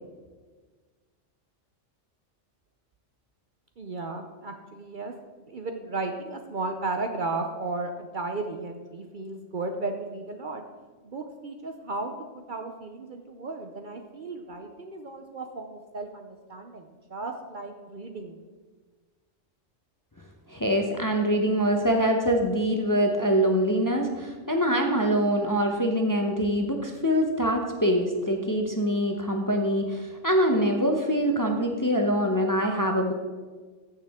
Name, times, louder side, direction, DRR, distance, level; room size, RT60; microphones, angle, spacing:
voice 1, 3.8-5.1 5.4-10.6 11.0-18.4, right 3 dB, 50° right, 5 dB, 0.7 m, -35 dB
voice 2, 20.5-33.1, equal, 20° left, 3 dB, 0.7 m, -24 dB
14.5 x 6.7 x 3.6 m, 1.4 s
omnidirectional pair, 1.3 m